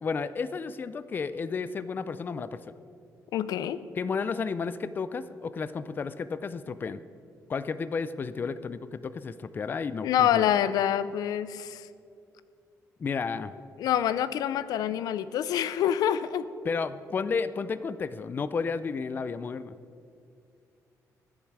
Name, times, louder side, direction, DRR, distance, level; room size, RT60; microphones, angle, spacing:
voice 1, 0.0-2.6 4.0-7.0 7.5-10.5 13.0-13.5 16.6-19.7, left 5 dB, 30° left, 14 dB, 0.4 m, -32 dB
voice 2, 3.3-3.8 10.0-11.9 13.8-16.5, left 10 dB, 85° left, 14 dB, 0.5 m, -26 dB
22.0 x 7.4 x 4.7 m, 2.4 s
cardioid pair, 140°, 6 cm